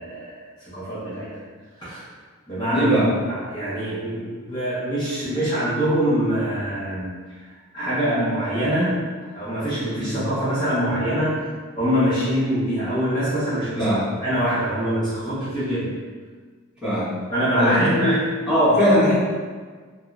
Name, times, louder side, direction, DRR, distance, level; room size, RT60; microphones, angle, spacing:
voice 1, 0.0-1.4 1.8-2.0 2.5-11.5 11.7-16.0 17.3-18.2, equal, 20° left, -14 dB, 1.0 m, -24 dB
voice 2, 2.7-3.1 10.0-10.2 13.7-14.1 16.8-17.1 17.6-19.1, equal, 5° right, -14 dB, 1.2 m, -20 dB
3.6 x 2.2 x 2.5 m, 1.5 s
head